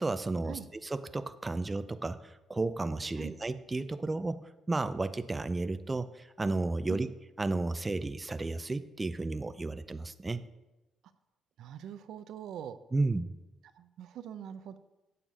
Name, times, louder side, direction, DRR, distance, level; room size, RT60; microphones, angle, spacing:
voice 1, 0.0-4.4 4.7-7.1 7.4-10.4 12.9-13.3, right 3 dB, 20° right, 11 dB, 0.5 m, -33 dB
voice 2, 11.6-12.8 13.7-14.8, right 9 dB, 80° right, 11 dB, 0.6 m, -43 dB
8.7 x 6.7 x 5.4 m, 1.0 s
cardioid pair, 90°, 0 cm